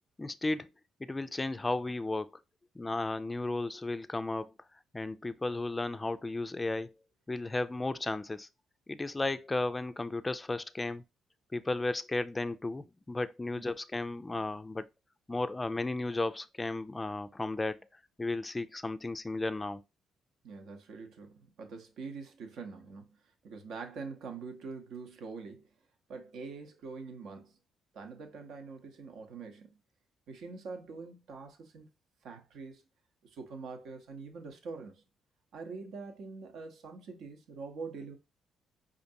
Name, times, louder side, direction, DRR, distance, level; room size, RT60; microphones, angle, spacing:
voice 1, 0.2-0.7 1.0-2.3 2.8-4.5 4.9-6.9 7.3-8.5 8.9-11.0 11.5-14.9 15.3-17.8 18.2-19.8, left 2 dB, 20° left, 0.3 m, -34 dB
voice 2, 20.4-23.2 23.4-25.7 26.1-27.6 27.9-29.8 30.3-31.9 32.2-32.8 33.2-35.0 35.5-38.2, right 4 dB, 75° right, 0.9 m, -44 dB
5.1 x 2.5 x 2.6 m
cardioid pair, 90°, 0 cm